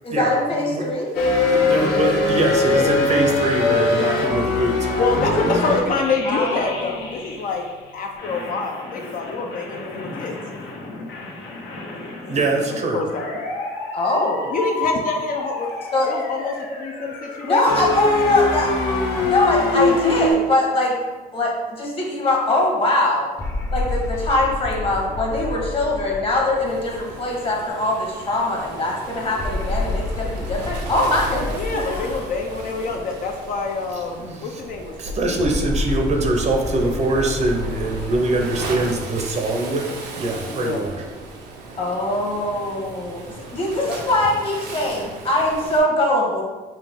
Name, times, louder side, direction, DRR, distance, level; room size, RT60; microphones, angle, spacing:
voice 1, 0.0-1.1 6.3-6.7 13.9-14.5 15.9-16.1 17.4-18.7 19.2-21.0 21.3-23.3 23.7-32.1 41.8-46.4, left 2 dB, 35° left, -2 dB, 1.2 m, -22 dB
sound 1, 1.1-7.7 8.2-20.3, left 3 dB, 75° left, 1.0 m, -24 dB
voice 2, 1.4-5.0 5.3-5.4 12.3-13.0 34.2-34.6 35.0-39.8 40.2-41.0, right 2 dB, 40° right, 2 dB, 0.7 m, -23 dB
voice 3, 2.5-2.9 4.8-7.6 7.9-10.4 12.7-13.4 14.5-15.7 16.0-17.9 31.5-35.4 40.5-40.8, left 4 dB, 55° left, 1 dB, 0.6 m, -26 dB
sound 2, 23.4-28.0 29.4-33.8 35.4-39.9, left 2 dB, 15° left, 0.7 m, -30 dB
Waves surf, 26.7-45.8, right 3 dB, 80° right, 0.7 m, -36 dB
5.5 x 2.4 x 3.5 m, 1.3 s
cardioid pair, 110°, 17 cm